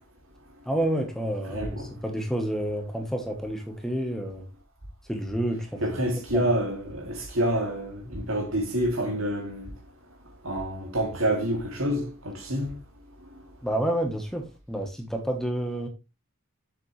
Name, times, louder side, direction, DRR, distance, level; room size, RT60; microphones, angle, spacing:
voice 1, 0.7-4.4 5.1-5.8 6.3-6.5 13.6-15.9, right 1 dB, ahead, 1.2 m, -29 dB
voice 2, 1.5-1.9 5.8-9.7 10.4-12.7, right 1 dB, 70° right, 2.6 m, -28 dB
7.4 x 7.1 x 3.2 m
head